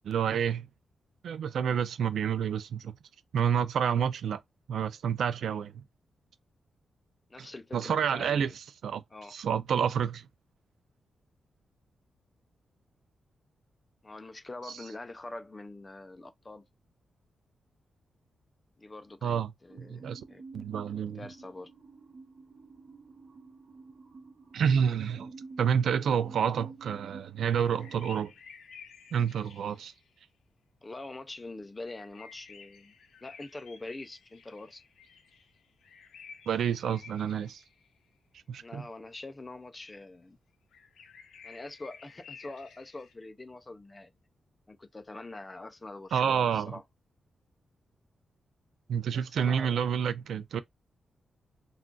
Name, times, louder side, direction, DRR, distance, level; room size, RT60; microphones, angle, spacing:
voice 1, 0.0-0.7 1.2-3.0 3.3-4.4 4.7-5.7 7.4-7.5 7.7-9.0 9.3-10.3 19.2-19.5 19.8-20.2 20.5-21.2 24.5-25.3 25.6-28.3 29.1-29.9 36.5-37.6 38.5-38.8 46.1-46.8 48.9-50.6, right 7 dB, 75° right, 0.4 m, -29 dB
voice 2, 7.3-8.6 9.1-9.4 14.0-16.7 18.8-21.7 30.8-32.9 33.2-34.8 38.6-40.4 41.4-44.1 44.7-46.8 49.1-49.9, left 2 dB, 15° left, 0.4 m, -44 dB
sound 1, 19.7-28.1, right 4 dB, 35° right, 1.1 m, -50 dB
sound 2, 27.6-30.2 31.8-38.1 40.7-43.1, left 6 dB, 85° left, 0.6 m, -53 dB
2.3 x 2.3 x 3.8 m
wide cardioid pair, 175°, 0 cm